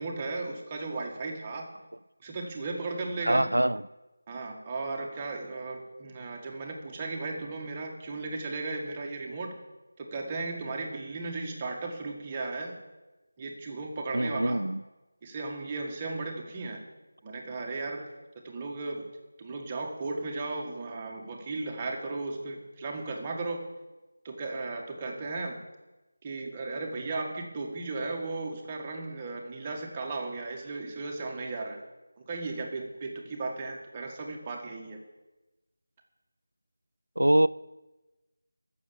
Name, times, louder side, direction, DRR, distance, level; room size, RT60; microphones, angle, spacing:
voice 1, 0.0-1.7 2.2-3.8 4.3-9.6 10.0-12.8 13.4-14.6 15.2-16.8 17.2-18.1 18.4-19.1 19.4-23.7 24.2-25.6 26.2-31.8 32.3-35.0, right 3 dB, 20° right, 1 dB, 1.6 m, -35 dB
voice 2, 3.2-3.8 14.1-14.8 37.2-37.5, right 1 dB, 85° right, 17 dB, 0.4 m, -24 dB
14.0 x 6.8 x 7.2 m, 1.1 s
figure-of-eight pair, 165°, 0 cm